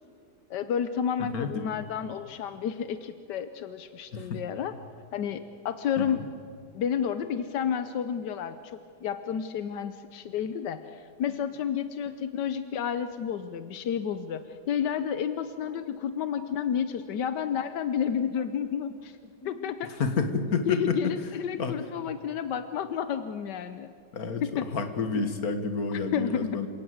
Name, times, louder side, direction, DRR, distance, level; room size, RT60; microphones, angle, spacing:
voice 1, 0.5-4.8 5.1-6.2 6.7-19.2 19.4-19.9 20.6-23.9 24.4-24.7 25.9-26.6, left 8 dB, 85° left, 11 dB, 1.5 m, -31 dB
voice 2, 16.0-16.6 19.4-19.7 20.0-21.0 21.5-21.7 24.1-24.4 24.7-26.7, left 4 dB, 60° left, 8 dB, 2.1 m, -30 dB
28.0 x 17.5 x 7.9 m, 2.3 s
omnidirectional pair, 1.8 m